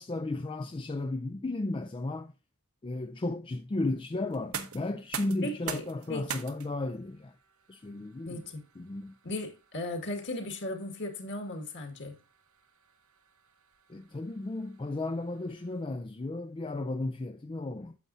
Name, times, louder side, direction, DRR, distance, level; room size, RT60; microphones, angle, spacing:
voice 1, 0.0-2.3 2.8-7.4 7.7-8.4 8.8-9.2 13.9-18.0, left 2 dB, 20° left, 0.4 m, -34 dB
sound 1, 4.3-16.1, right 7 dB, 65° right, 1.1 m, -46 dB
voice 2, 5.4-6.3 8.3-8.6 9.2-12.2, left 1 dB, 50° left, 2.0 m, -37 dB
9.4 x 7.2 x 2.6 m
head